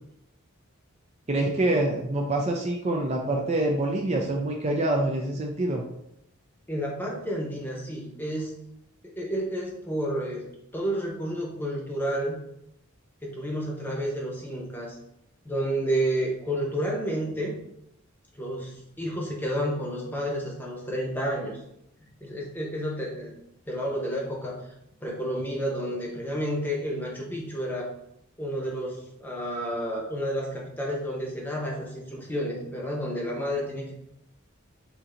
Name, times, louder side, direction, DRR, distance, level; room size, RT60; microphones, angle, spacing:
voice 1, 1.3-5.8, right 1 dB, 30° right, 0 dB, 0.4 m, -26 dB
voice 2, 6.7-8.5 9.0-12.4 13.2-15.0 15.4-17.6 18.3-21.6 22.2-23.3 23.7-24.7 25.0-27.9 28.4-33.9, equal, 10° left, -2 dB, 0.9 m, -30 dB
6.9 x 2.7 x 2.6 m, 0.80 s
head